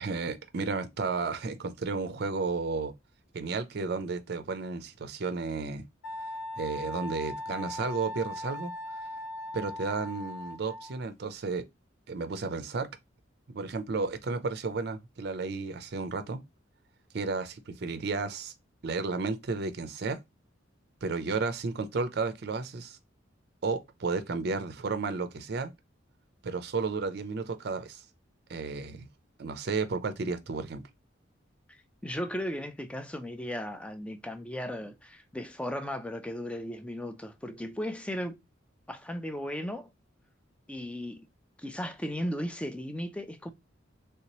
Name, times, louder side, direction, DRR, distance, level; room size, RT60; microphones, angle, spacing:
voice 1, 0.0-2.9 3.3-5.8 6.6-8.7 9.5-11.6 12.1-12.9 13.5-16.4 17.1-18.5 18.8-20.2 21.0-23.0 23.6-25.7 26.4-28.0 28.5-29.1 29.4-30.8, right 4 dB, 55° right, 0.5 m, -32 dB
Wind instrument woodwind instrument, 6.0-11.0, left 1 dB, 75° left, 1.4 m, -39 dB
voice 2, 31.7-38.4 38.9-39.9 40.7-41.3 41.6-43.5, equal, 5° left, 0.3 m, -36 dB
3.3 x 2.8 x 2.9 m
head